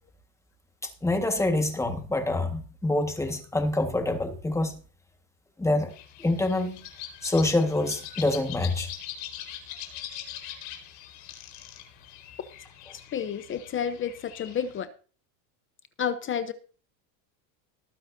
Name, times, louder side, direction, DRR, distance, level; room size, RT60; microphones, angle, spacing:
voice 1, 0.8-4.7 5.6-5.9 6.2-6.8 7.2-8.9, left 2 dB, 5° left, 1.6 m, -26 dB
sound 1, 5.9-14.8, left 11 dB, 55° left, 4.2 m, -42 dB
voice 2, 12.9-14.9 16.0-16.5, left 8 dB, 25° left, 0.8 m, -30 dB
19.0 x 9.4 x 2.7 m
supercardioid pair, 140°, 49 cm